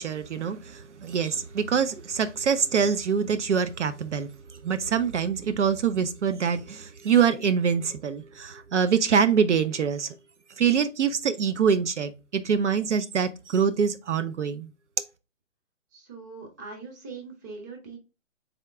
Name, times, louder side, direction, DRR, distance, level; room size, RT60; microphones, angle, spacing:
voice 1, 0.0-4.3 4.6-10.1 10.6-14.7, right 7 dB, 60° right, 0.5 m, -25 dB
voice 2, 15.9-18.0, right 4 dB, 15° right, 0.6 m, -41 dB
3.8 x 3.6 x 3.3 m
figure-of-eight pair, 140°, 40 cm